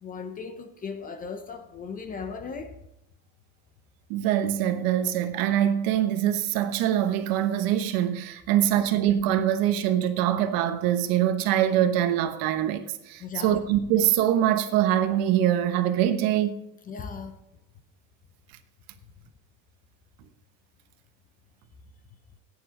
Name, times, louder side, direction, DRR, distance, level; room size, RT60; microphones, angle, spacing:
voice 1, 0.0-2.8 8.5-8.7 13.2-13.6 16.8-17.4 19.0-19.1, left 5 dB, 20° left, 0.7 m, -37 dB
voice 2, 4.1-16.6, right 11 dB, 65° right, 1.1 m, -24 dB
15.0 x 9.4 x 3.8 m
cardioid pair, 175°, 38 cm